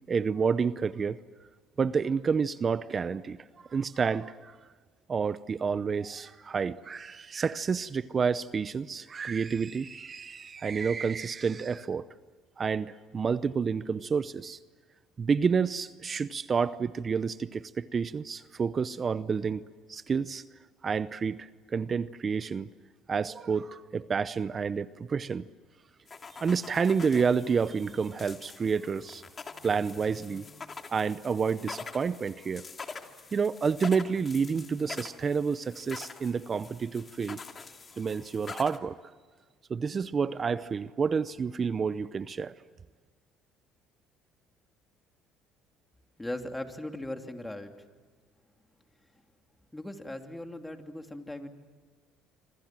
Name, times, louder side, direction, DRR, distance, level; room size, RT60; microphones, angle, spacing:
voice 1, 0.1-1.2 1.8-3.4 3.7-4.6 5.1-12.1 12.6-14.6 15.2-19.6 19.9-20.4 20.8-22.7 23.1-25.4 26.4-29.2 29.6-30.4 30.9-32.6 33.3-37.4 38.0-39.0 39.7-42.5, right 5 dB, 35° right, 15 dB, 0.7 m, -29 dB
sound 1, 26.1-38.8, left 4 dB, 30° left, 2.6 m, -45 dB
voice 2, 46.2-47.7 49.1-49.2 49.7-51.5, left 1 dB, 10° left, 5 dB, 3.0 m, -38 dB
27.0 x 25.5 x 7.6 m, 1.5 s
supercardioid pair, 80°, 0 cm